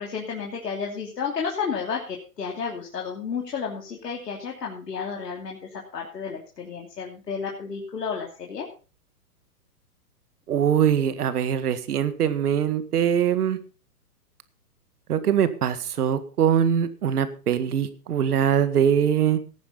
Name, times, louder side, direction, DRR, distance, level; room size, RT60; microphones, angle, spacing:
voice 1, 0.0-5.6 5.9-8.7, left 6 dB, 85° left, -1 dB, 3.1 m, -32 dB
voice 2, 10.5-13.6 15.1-19.4, right 8 dB, 70° right, 12 dB, 2.0 m, -22 dB
18.0 x 9.6 x 4.0 m, 0.36 s
hypercardioid pair, 130°, 47 cm